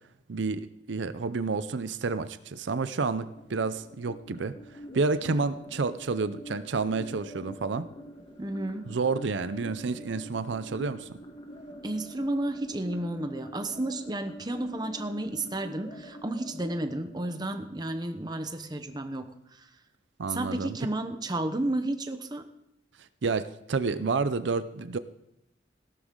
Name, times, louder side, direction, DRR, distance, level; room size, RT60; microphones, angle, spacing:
voice 1, 0.3-7.9 8.9-11.2 20.2-20.8 23.0-25.0, right 4 dB, 75° right, 13 dB, 0.5 m, -30 dB
sound 1, 3.2-18.2, equal, 25° left, 1.2 m, -46 dB
voice 2, 8.4-8.9 11.8-19.7 20.3-22.4, right 1 dB, 20° right, 8 dB, 0.9 m, -32 dB
17.0 x 12.5 x 3.8 m, 0.79 s
head